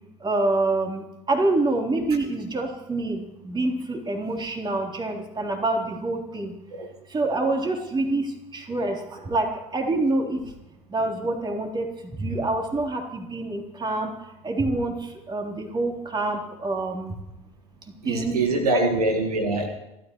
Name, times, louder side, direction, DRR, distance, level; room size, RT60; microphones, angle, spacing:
voice 1, 0.2-1.0 1.3-3.2 3.4-6.5 7.1-8.3 8.5-9.0 9.3-9.5 9.7-10.4 10.9-11.9 12.2-14.1 14.4-14.9 15.3-17.1 18.1-18.4 18.7-18.8, right 2 dB, 25° right, 1 dB, 3.5 m, -26 dB
voice 2, 18.0-19.7, right 2 dB, 80° right, 4 dB, 1.8 m, -24 dB
29.5 x 13.0 x 3.1 m, 0.91 s
figure-of-eight pair, 65°, 19 cm